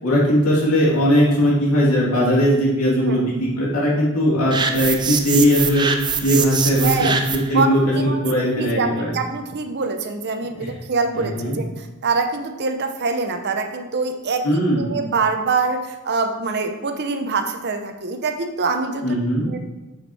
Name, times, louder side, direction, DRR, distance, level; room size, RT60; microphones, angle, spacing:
voice 1, 0.0-5.9 6.2-9.1 10.6-10.7 11.1-11.6 14.4-14.9 19.0-19.5, equal, 90° left, -5 dB, 2.5 m, -19 dB
sound 1, 4.5-7.6, right 6 dB, 20° right, 0.4 m, -24 dB
voice 2, 6.8-7.2 7.5-8.2 8.6-19.2 19.4-19.6, right 4 dB, 50° right, 6 dB, 0.7 m, -24 dB
7.3 x 5.2 x 4.1 m, 1.1 s
head